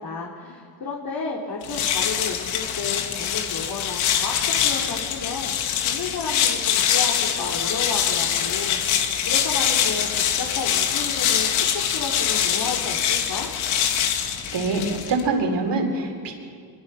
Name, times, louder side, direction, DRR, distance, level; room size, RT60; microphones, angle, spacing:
voice 1, 0.0-5.5 5.8-13.5, left 4 dB, 50° left, -2 dB, 3.2 m, -32 dB
sound 1, 1.6-15.3, left 9 dB, 90° left, 2.2 m, -24 dB
voice 2, 14.5-16.3, right 3 dB, 60° right, 3 dB, 4.4 m, -24 dB
24.0 x 22.5 x 5.7 m, 2.2 s
cardioid pair, 80°, 47 cm